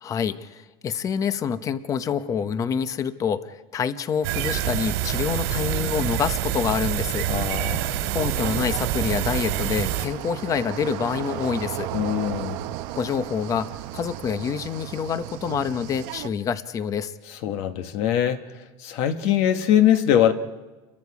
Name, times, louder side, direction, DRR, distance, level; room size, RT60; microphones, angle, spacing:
voice 1, 0.0-7.3 8.1-11.9 12.9-17.1, left 7 dB, 25° left, 0.8 m, -27 dB
sound 1, 4.2-10.1, right 12 dB, 75° right, 2.8 m, -26 dB
voice 2, 7.3-7.9 11.9-12.6 17.4-18.4 18.8-20.3, left 10 dB, 55° left, 1.3 m, -22 dB
sound 2, 7.8-16.3, right 15 dB, 60° right, 0.9 m, -35 dB
29.0 x 22.5 x 4.8 m
supercardioid pair, 150°, 13 cm